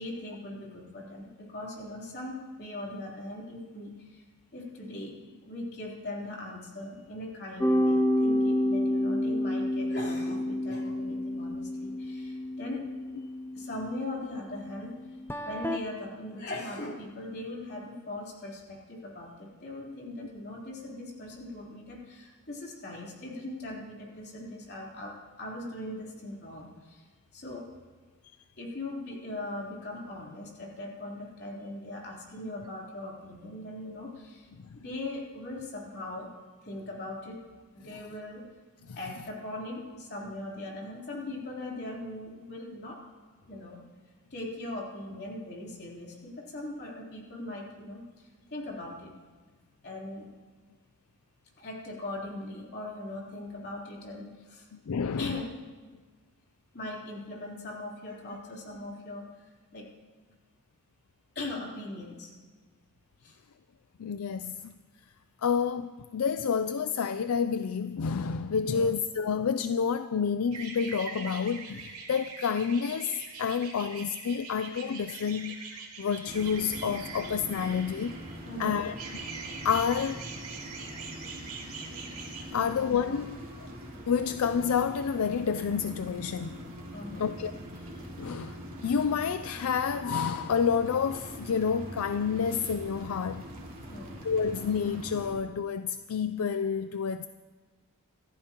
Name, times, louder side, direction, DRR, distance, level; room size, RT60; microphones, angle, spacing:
voice 1, 0.0-4.2 4.5-12.8 13.5-14.9 15.5-25.1 25.4-27.0 27.3-27.6 28.6-34.5 34.8-36.3 36.6-37.4 37.7-38.4 39.0-43.0 43.5-43.8 44.3-48.0 48.5-49.1 49.8-50.3 51.6-54.6 55.2-55.5 56.7-59.2 59.7-59.8 61.4-62.3 63.2-63.3 68.6-68.9 78.4-78.8 82.5-82.7 86.9-87.3 93.9-94.2, left 1 dB, 50° left, 3.5 m, -40 dB
sound 1, 7.6-15.8, left 1 dB, 10° left, 0.5 m, -29 dB
voice 2, 54.7-55.4 64.0-64.7 65.4-75.6 76.0-79.2 79.6-80.2 82.5-83.7 84.1-86.6 87.2-87.5 88.2-93.5 94.2-97.3, left 6 dB, 75° left, 0.4 m, -29 dB
sound 2, 70.5-78.5 79.0-82.4, right 5 dB, 75° right, 2.8 m, -43 dB
sound 3, 76.3-95.3, equal, 40° right, 2.9 m, -43 dB
27.0 x 14.0 x 3.0 m
head